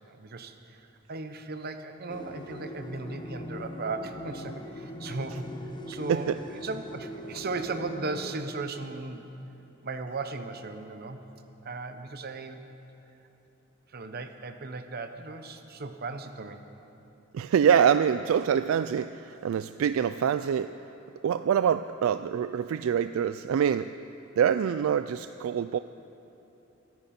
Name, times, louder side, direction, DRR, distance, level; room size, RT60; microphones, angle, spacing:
voice 1, 0.1-0.8 1.1-5.4 5.9-9.2 9.8-11.2 11.6-12.6 13.9-16.6, right 3 dB, 50° right, 8 dB, 0.9 m, -36 dB
sound 1, 2.1-8.4, left 1 dB, 20° left, 0.7 m, -41 dB
voice 2, 17.3-20.7 21.2-23.9 24.4-25.8, right 8 dB, 75° right, 12 dB, 0.3 m, -25 dB
23.0 x 10.5 x 4.3 m, 2.9 s
head